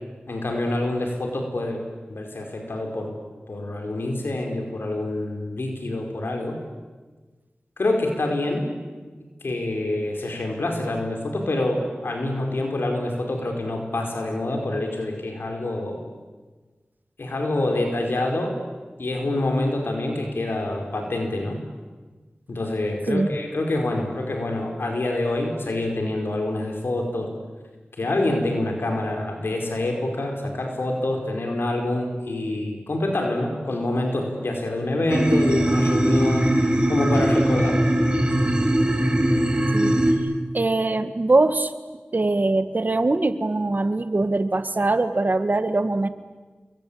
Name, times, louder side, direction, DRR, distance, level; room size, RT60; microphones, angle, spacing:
voice 1, 0.3-1.8 2.1-3.2 3.5-6.6 7.8-8.7 9.4-16.0 17.2-18.6 19.0-21.6 22.5-27.3 28.0-36.6 36.9-37.8, left 1 dB, 85° left, 2 dB, 4.8 m, -26 dB
sound 1, 35.1-40.1, right 1 dB, 25° right, 4.6 m, -20 dB
voice 2, 40.5-41.7 42.1-46.1, right 2 dB, 55° right, 11 dB, 1.8 m, -22 dB
28.5 x 23.0 x 8.8 m, 1.3 s
wide cardioid pair, 45°, 4 cm